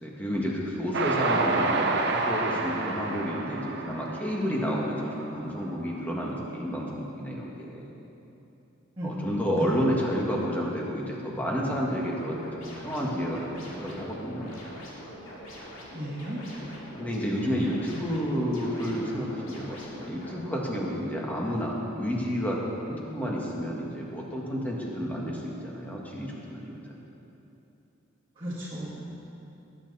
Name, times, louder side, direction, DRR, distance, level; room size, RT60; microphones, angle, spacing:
voice 1, 0.0-7.9 9.0-12.4 12.6-14.5 16.9-22.6 22.9-26.7, equal, 10° left, -3 dB, 1.8 m, -30 dB
Train, 0.9-5.3, right 3 dB, 55° right, 1.0 m, -28 dB
voice 2, 9.0-9.8 15.9-16.4 28.4-29.2, equal, 25° right, -10 dB, 2.2 m, -35 dB
sound 1, 12.0-20.4, equal, 75° left, 3.0 m, -44 dB
19.5 x 9.1 x 4.2 m, 2.9 s
head